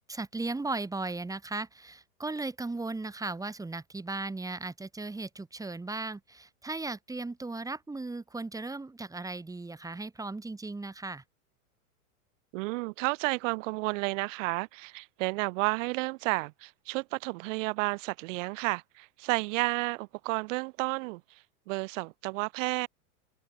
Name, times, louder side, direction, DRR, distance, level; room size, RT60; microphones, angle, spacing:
voice 1, 0.0-11.2, right 3 dB, 5° right, 3.3 m, -36 dB
voice 2, 12.5-22.9, right 25 dB, 55° right, 7.1 m, -32 dB
hypercardioid pair, 115°, 45 cm